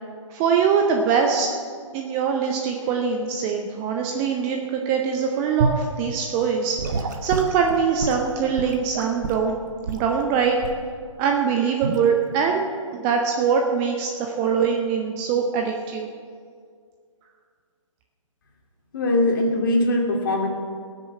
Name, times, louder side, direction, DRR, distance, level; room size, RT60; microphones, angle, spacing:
voice 1, 0.3-1.5 1.9-6.8 7.2-9.5 9.9-10.6 11.2-16.1, right 6 dB, 15° right, 2 dB, 0.6 m, -23 dB
Gurgling / Sink (filling or washing) / Liquid, 5.6-5.9 6.8-9.5 9.9-10.1 10.6-10.9 11.8-12.0, right 4 dB, 35° right, 1.1 m, -27 dB
voice 2, 18.9-20.5, left 1 dB, 40° left, 0 dB, 2.4 m, -21 dB
19.0 x 6.7 x 7.4 m, 2.1 s
figure-of-eight pair, 135°, 17 cm